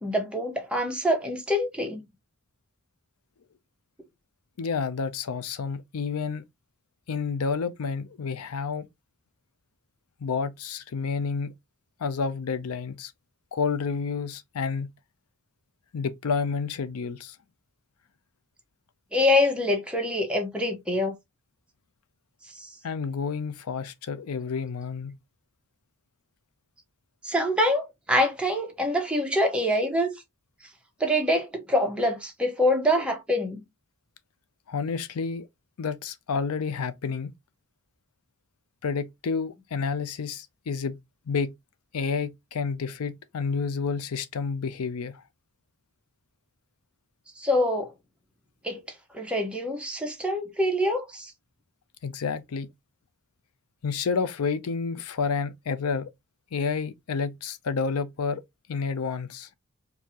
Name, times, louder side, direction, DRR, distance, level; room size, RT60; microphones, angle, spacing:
voice 1, 0.0-2.0 19.1-21.1 22.6-22.7 27.2-30.1 31.0-33.6 47.4-47.9 48.6-48.8 49.1-51.3, left 1 dB, 5° right, 1.0 m, -25 dB
voice 2, 4.6-6.4 7.1-8.8 10.2-11.5 12.0-13.1 13.5-14.9 15.9-17.4 22.8-25.1 34.7-35.5 35.8-37.3 38.8-41.0 41.3-41.5 41.9-45.2 52.0-52.7 53.8-56.1 56.5-58.4 58.7-59.5, left 5 dB, 90° left, 0.5 m, -30 dB
4.5 x 2.7 x 2.8 m
head